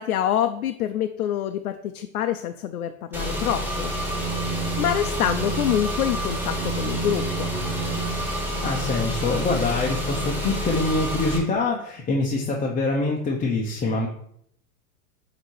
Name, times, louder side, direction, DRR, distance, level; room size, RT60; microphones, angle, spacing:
voice 1, 0.0-3.9 4.8-7.5, left 10 dB, 90° left, 7 dB, 0.6 m, -26 dB
Car / Engine, 3.1-11.4, right 1 dB, 5° right, 2.1 m, -28 dB
voice 2, 8.6-14.1, left 3 dB, 20° left, -2 dB, 0.8 m, -25 dB
7.9 x 3.0 x 4.6 m, 0.69 s
hypercardioid pair, 115°, 42 cm